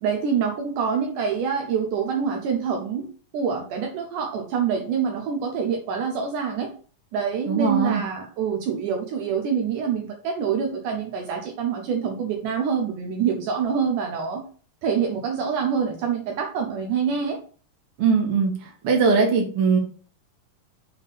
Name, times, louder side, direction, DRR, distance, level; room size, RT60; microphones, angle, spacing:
voice 1, 0.0-3.1 3.3-6.7 7.1-14.4 14.8-17.4, right 6 dB, 75° right, 3 dB, 2.2 m, -26 dB
voice 2, 7.5-8.0 18.0-19.8, right 5 dB, 50° right, 1 dB, 2.0 m, -21 dB
7.2 x 3.7 x 4.0 m, 0.42 s
omnidirectional pair, 3.9 m